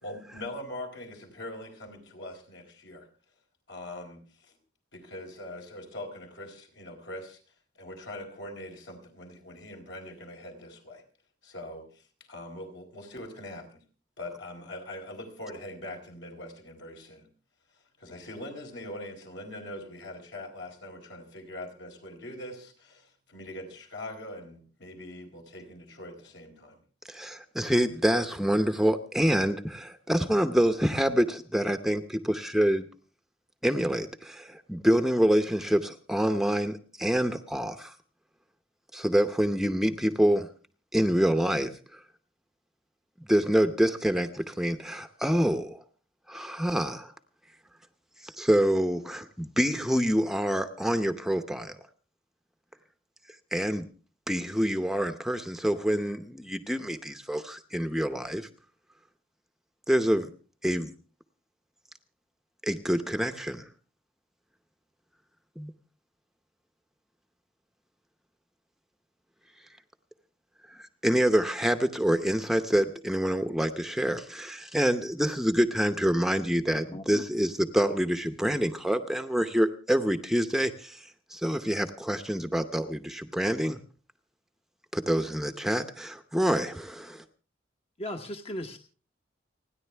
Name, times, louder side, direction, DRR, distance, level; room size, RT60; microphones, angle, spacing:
voice 1, 0.0-3.1 3.7-4.6 4.9-7.4 7.8-11.0 11.4-13.8 14.2-17.3 18.0-26.8, left 1 dB, 70° left, 3 dB, 4.3 m, -42 dB
voice 2, 27.1-32.8 33.6-37.9 38.9-40.5 40.9-42.0 43.3-45.8 46.3-47.1 48.2-51.8 53.5-53.8 54.3-58.5 59.9-60.3 60.6-60.9 62.6-63.7 65.6-65.7 70.7-83.8 84.9-87.2, equal, ahead, 9 dB, 0.8 m, -26 dB
voice 3, 76.9-77.2 88.0-88.8, left 1 dB, 30° left, 5 dB, 1.0 m, -37 dB
30.0 x 10.5 x 3.4 m, 0.37 s
head